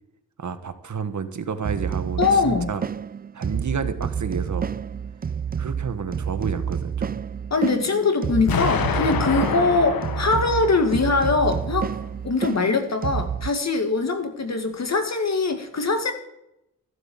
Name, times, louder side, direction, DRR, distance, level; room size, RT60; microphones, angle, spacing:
voice 1, 0.4-2.8 3.3-4.7 5.6-7.2, right 6 dB, 55° right, 10 dB, 1.4 m, -30 dB
sound 1, 1.6-13.5, right 7 dB, 30° right, 0.4 m, -29 dB
voice 2, 2.2-2.7 7.5-12.0 12.2-16.1, left 3 dB, 50° left, 6 dB, 2.2 m, -22 dB
Explosion, 8.5-11.5, left 7 dB, 85° left, 1.2 m, -27 dB
14.0 x 8.0 x 7.2 m, 0.82 s
cardioid pair, 80°, 34 cm